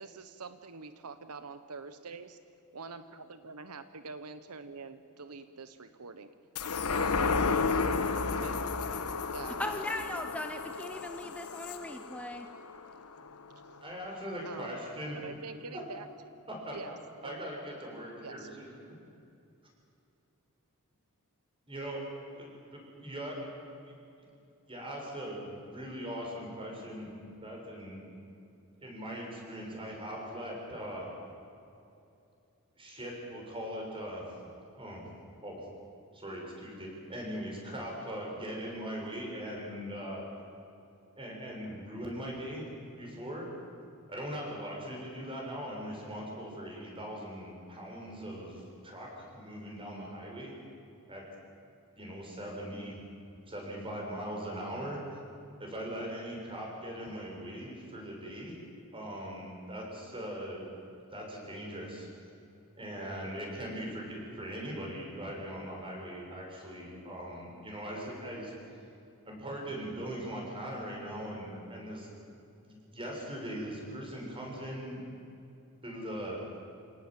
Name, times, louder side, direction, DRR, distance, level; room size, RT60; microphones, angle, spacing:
voice 1, 0.0-2.4 2.7-6.3 6.9-7.3 8.3-8.7 9.3-9.6 13.2-13.8 14.4-14.8 15.1-16.1 16.7-17.0 17.2-17.4 18.2-18.5, right 4 dB, 85° right, 10 dB, 1.1 m, -45 dB
sound 1, 6.6-13.3 13.8-13.9, left 4 dB, 90° left, 1.3 m, -32 dB
voice 2, 9.6-12.5, left 1 dB, 5° left, 6 dB, 0.8 m, -38 dB
voice 3, 13.8-15.2 15.7-15.8 16.7-16.8 17.2-18.7 21.7-22.0 22.3-23.5 23.8-23.9 24.7-28.0 28.8-31.1 32.8-34.3 34.7-35.0 35.4-35.6 36.1-40.2 41.2-42.6 43.0-43.5 44.1-50.5 51.1-51.2 52.0-53.0 53.5-55.0 55.6-58.5 58.9-60.7 61.1-62.1 62.8-68.5 69.3-72.1 72.6-75.0 75.8-76.4, equal, 25° right, -1 dB, 7.0 m, -40 dB
28.0 x 18.0 x 9.1 m, 2.7 s
head